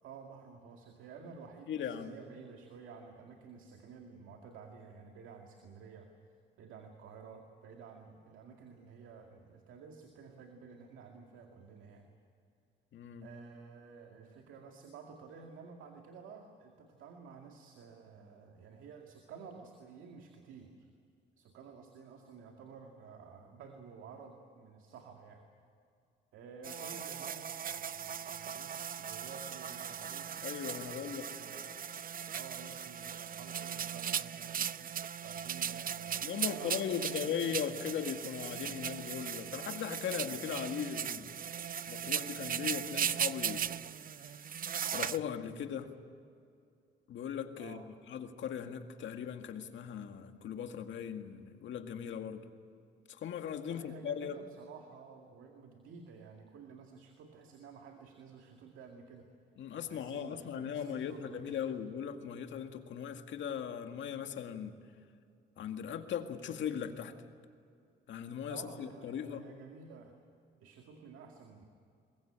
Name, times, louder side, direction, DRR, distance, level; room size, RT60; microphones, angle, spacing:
voice 1, 0.0-12.1 13.2-20.9 21.4-25.5 26.3-28.7 29.0-30.3 30.8-31.8 32.3-34.7 35.1-37.6 47.6-47.9 53.7-59.3 59.9-61.6 68.5-70.1 70.6-71.7, right 5 dB, 85° right, 3 dB, 2.3 m, -52 dB
voice 2, 1.7-2.1 12.9-13.3 30.4-31.3 36.2-41.3 41.9-43.7 44.0-44.5 44.9-45.9 47.1-52.4 53.1-54.4 59.6-64.8 65.6-67.2 68.1-69.4, left 8 dB, 70° left, 6 dB, 2.0 m, -39 dB
sound 1, 26.6-45.2, right 8 dB, 45° right, 0.7 m, -38 dB
22.5 x 21.5 x 8.9 m, 2.4 s
cardioid pair, 90°, 20 cm